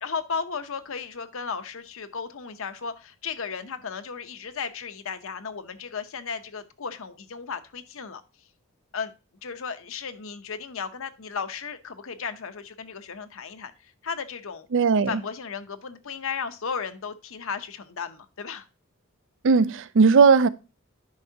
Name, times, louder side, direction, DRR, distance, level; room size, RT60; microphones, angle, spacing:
voice 1, 0.0-8.2 8.9-9.1 9.4-14.7 15.1-18.7, left 6 dB, 65° left, 0.8 m, -35 dB
voice 2, 14.7-15.1 19.4-20.5, right 5 dB, 60° right, 0.4 m, -17 dB
10.5 x 5.4 x 2.8 m
head